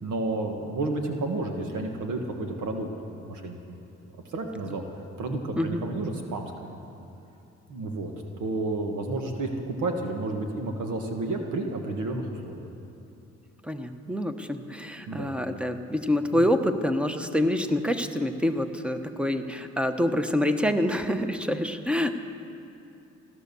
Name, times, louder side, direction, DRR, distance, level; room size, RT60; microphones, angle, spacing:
voice 1, 0.0-3.8 4.3-4.8 5.2-6.8 7.7-12.7 15.1-15.3 16.3-16.4, right 2 dB, 75° right, 3 dB, 1.6 m, -31 dB
voice 2, 13.7-22.2, left 1 dB, 5° right, 8 dB, 0.9 m, -26 dB
16.0 x 11.5 x 6.9 m, 2.9 s
cardioid pair, 90°, 30 cm